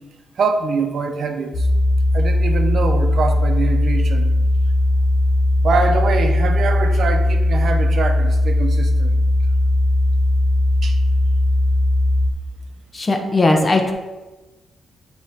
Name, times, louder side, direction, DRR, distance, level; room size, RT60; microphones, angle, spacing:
voice 1, 0.4-1.7 2.1-4.3 5.6-9.2 10.8-11.0, right 4 dB, 65° right, 5 dB, 0.7 m, -23 dB
sound 1, 1.5-12.3, left 1 dB, 50° left, 1.2 m, -18 dB
voice 2, 12.9-13.9, left 2 dB, 30° left, 3 dB, 0.9 m, -17 dB
8.0 x 3.1 x 4.8 m, 1.1 s
cardioid pair, 100°, 0 cm